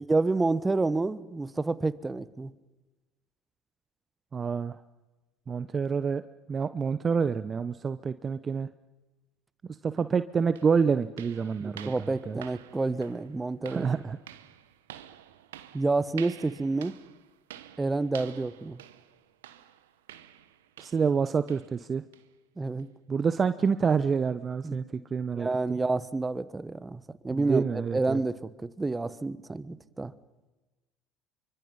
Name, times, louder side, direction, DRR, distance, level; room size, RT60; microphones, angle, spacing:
voice 1, 0.1-2.5 11.6-13.9 15.7-17.0 17.8-18.8 22.6-22.9 24.6-24.8 25.3-30.1, right 3 dB, 15° right, 16 dB, 1.4 m, -29 dB
voice 2, 4.3-4.8 5.5-6.2 6.5-8.7 9.6-11.9 12.3-12.4 13.7-14.2 20.8-22.0 23.1-25.8 27.3-28.2, right 6 dB, 35° right, 13 dB, 0.9 m, -27 dB
sound 1, 10.0-10.1 10.6-21.2 21.5-21.8 22.1-22.3 22.8-22.9 23.4-23.5, right 11 dB, 85° right, 1.3 m, -49 dB
28.0 x 24.5 x 5.5 m, 1.1 s
hypercardioid pair, 70°, 0 cm